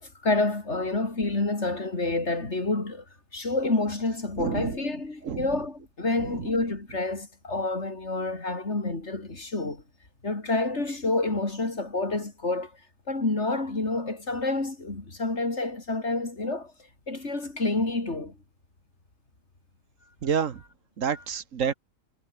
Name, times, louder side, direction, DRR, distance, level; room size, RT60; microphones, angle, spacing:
voice 1, 0.0-3.0 3.3-9.8 10.2-12.7 13.1-16.7 17.1-18.4 21.1-21.2, left 2 dB, 55° left, 4.1 m, -28 dB
voice 2, 4.4-4.8 5.2-5.5 6.2-6.3 20.2-20.6 21.0-21.7, right 7 dB, 75° right, 1.6 m, -28 dB
omnidirectional pair, 1.4 m